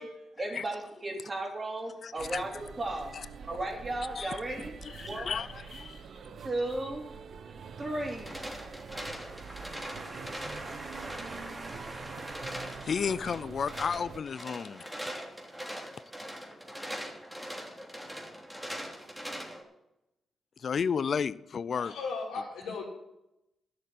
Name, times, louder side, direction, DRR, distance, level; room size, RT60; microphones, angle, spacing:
voice 1, 0.0-4.7 5.0-5.4 6.4-7.0 7.8-8.4 9.0-12.9, right 1 dB, 35° right, 3.7 m, -37 dB
voice 2, 2.0-2.4 3.1-3.2 4.2-4.3 4.8-6.0 12.8-14.8 20.6-21.9, left 6 dB, 60° left, 0.5 m, -32 dB
sound 1, 2.2-14.2, right 6 dB, 65° right, 1.0 m, -46 dB
sound 2, 8.0-19.6, equal, 5° right, 3.0 m, -42 dB
voice 3, 21.8-22.8, left 4 dB, 85° left, 3.6 m, -36 dB
11.5 x 6.7 x 9.4 m
supercardioid pair, 50°, 0 cm